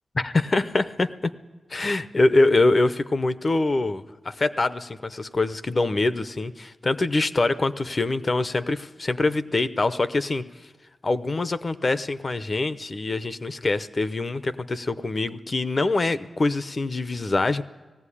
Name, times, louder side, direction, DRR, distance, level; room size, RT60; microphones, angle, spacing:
voice 1, 0.1-1.3 1.7-10.4 11.0-17.6, left 2 dB, 30° left, 14 dB, 0.7 m, -24 dB
18.5 x 15.5 x 9.9 m, 1.2 s
wide cardioid pair, 170°, 0 cm